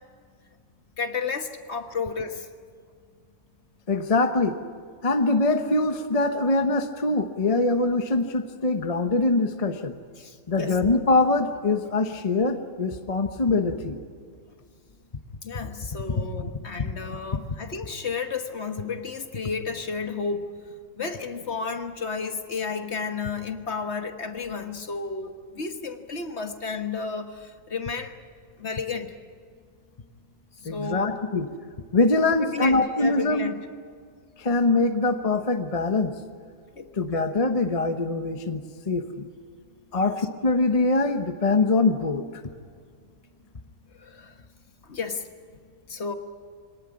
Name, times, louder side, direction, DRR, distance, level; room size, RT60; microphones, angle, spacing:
voice 1, 1.0-2.5 10.2-10.8 15.4-20.6 21.0-28.1 28.6-29.1 30.6-31.2 32.4-33.6 36.8-36.9 40.0-40.1 43.9-44.4 44.8-45.3 45.9-46.1, left 5 dB, 50° left, 7 dB, 1.5 m, -32 dB
voice 2, 3.9-4.6 5.0-10.0 10.5-14.0 16.8-16.9 30.6-31.5 31.9-33.5 34.4-36.1 37.0-39.3 39.9-42.3, left 3 dB, 25° left, 7 dB, 1.0 m, -23 dB
24.0 x 18.5 x 9.7 m, 2.1 s
omnidirectional pair, 1.6 m